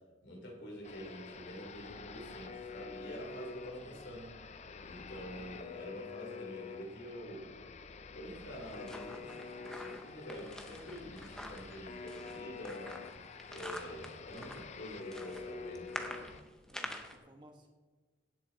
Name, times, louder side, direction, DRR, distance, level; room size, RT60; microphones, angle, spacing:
voice 1, 0.2-4.3 4.8-7.6 8.1-13.0 13.5-16.3, equal, 65° left, -1 dB, 3.2 m, -47 dB
sound 1, 0.8-16.4, left 4 dB, 35° left, 0.4 m, -47 dB
sound 2, 8.4-17.2, left 1 dB, 5° left, 0.8 m, -47 dB
voice 2, 16.7-17.7, equal, 25° right, 3 dB, 1.2 m, -57 dB
17.0 x 7.6 x 4.0 m, 1.3 s
head